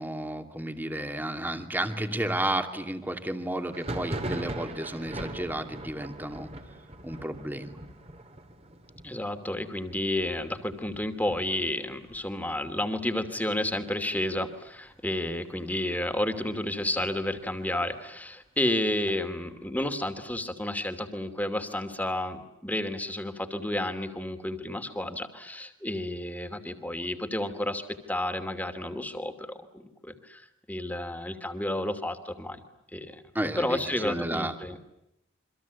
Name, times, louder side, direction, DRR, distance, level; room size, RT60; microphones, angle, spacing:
voice 1, 0.0-6.5 7.0-7.7 33.3-34.8, right 1 dB, 10° right, 6 dB, 2.5 m, -32 dB
Thunder, 3.7-13.2 13.5-14.2 14.4-15.4 15.8-17.5, right 1 dB, 30° right, 3.1 m, -41 dB
voice 2, 9.0-30.4 30.7-32.6 32.9-33.2 33.6-34.8, left 1 dB, 10° left, 8 dB, 2.7 m, -31 dB
28.5 x 25.5 x 8.4 m, 0.83 s
head